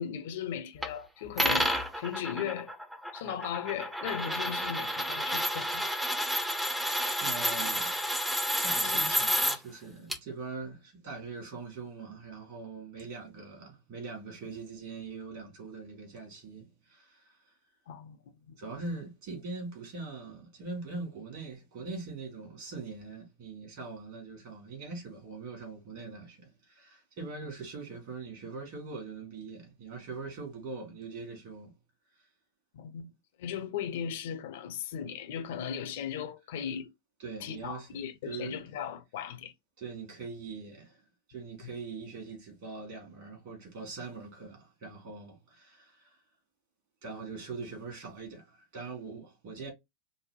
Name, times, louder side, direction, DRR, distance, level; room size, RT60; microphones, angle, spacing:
voice 1, 0.0-2.7 3.1-5.9 8.8-9.2 17.9-18.2 18.5-18.6 32.7-33.1 33.4-36.9 37.4-39.5, left 8 dB, 55° left, 0.7 m, -37 dB
sound 1, 0.8-0.9 1.4-9.6 10.1-10.2, equal, 5° right, 0.7 m, -30 dB
voice 2, 7.2-8.1 8.6-17.4 18.6-31.7 37.2-37.9 38.2-38.6 39.8-41.0 41.3-46.2 47.0-49.7, right 4 dB, 45° right, 2.6 m, -42 dB
5.3 x 2.1 x 3.0 m
figure-of-eight pair, 90°, 0 cm